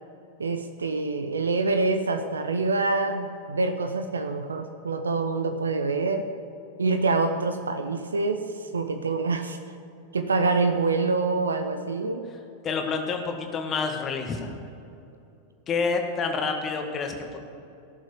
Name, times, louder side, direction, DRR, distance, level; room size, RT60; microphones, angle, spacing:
voice 1, 0.4-6.3 6.8-9.6 10.1-12.3, right 3 dB, 75° right, 9 dB, 0.8 m, -26 dB
voice 2, 12.6-14.5 15.7-17.4, left 4 dB, 25° left, 3 dB, 1.9 m, -28 dB
17.5 x 7.4 x 8.4 m, 2.7 s
figure-of-eight pair, 90°, 0 cm